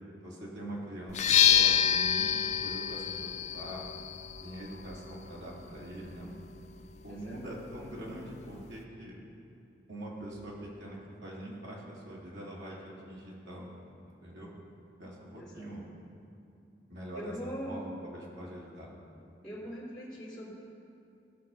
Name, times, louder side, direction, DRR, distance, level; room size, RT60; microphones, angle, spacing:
voice 1, 0.2-3.8 4.4-6.3 7.0-9.2 9.9-13.7 14.2-14.5 15.0-15.9 16.9-17.3 17.7-18.9, right 1 dB, 80° right, -5 dB, 2.8 m, -43 dB
sound 1, 1.1-8.8, left 9 dB, 40° left, 0.4 m, -30 dB
voice 2, 7.0-7.4 15.1-15.7 17.1-17.9 19.4-20.5, equal, 5° left, -8 dB, 3.1 m, -42 dB
16.5 x 6.4 x 5.5 m, 2.6 s
head